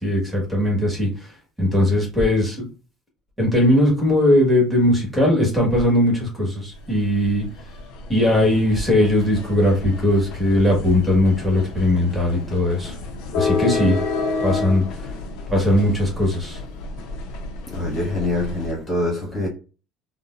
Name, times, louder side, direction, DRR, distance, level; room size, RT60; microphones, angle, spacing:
voice 1, 0.0-1.1 1.6-2.7 3.4-7.5 8.1-12.9 13.3-14.0 14.4-14.8 15.5-16.6, left 1 dB, 5° right, 1.6 m, -19 dB
sound 1, 6.7-18.7, left 4 dB, 70° left, 0.6 m, -30 dB
voice 2, 17.7-19.5, left 1 dB, 35° left, 1.5 m, -24 dB
3.8 x 2.1 x 2.4 m
supercardioid pair, 95°, 0 cm